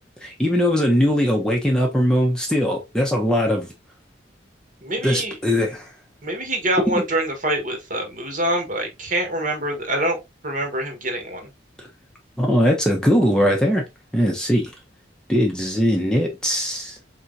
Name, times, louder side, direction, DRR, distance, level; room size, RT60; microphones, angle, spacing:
voice 1, 0.2-3.7 5.0-5.9 6.9-7.0 12.4-13.8 14.1-14.7 15.3-17.0, equal, 5° left, 0.7 m, -20 dB
voice 2, 4.8-5.4 6.2-10.2 10.4-11.5, right 1 dB, 45° right, 1.4 m, -25 dB
4.4 x 3.4 x 2.6 m
head